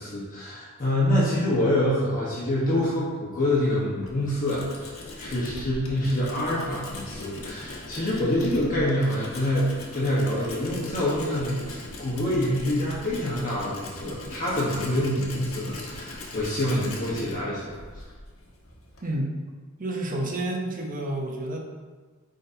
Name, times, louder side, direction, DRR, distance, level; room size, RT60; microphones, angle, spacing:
voice 1, 0.0-17.7, left 1 dB, 40° left, -7 dB, 1.3 m, -26 dB
Tools, 3.8-19.2, left 2 dB, 80° left, 1.3 m, -40 dB
voice 2, 19.0-19.4 19.8-21.6, right 1 dB, 40° right, 0 dB, 0.8 m, -29 dB
9.1 x 3.8 x 2.8 m, 1.4 s
head